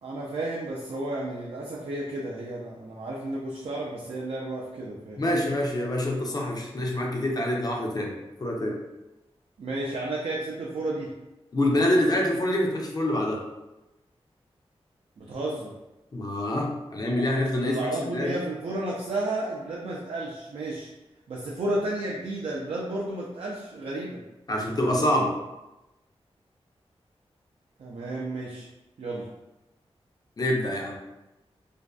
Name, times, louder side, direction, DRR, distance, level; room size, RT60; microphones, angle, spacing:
voice 1, 0.0-5.5 9.6-11.1 15.2-15.7 17.1-17.2 17.5-20.9 21.3-24.2 27.8-28.7 29.0-29.3, right 2 dB, 70° right, -3 dB, 0.4 m, -32 dB
voice 2, 5.2-8.8 11.5-13.4 16.1-18.4 24.5-25.4 30.4-31.0, left 1 dB, 35° left, -1 dB, 0.5 m, -26 dB
2.5 x 2.2 x 2.2 m, 1.0 s
wide cardioid pair, 80°, 11 cm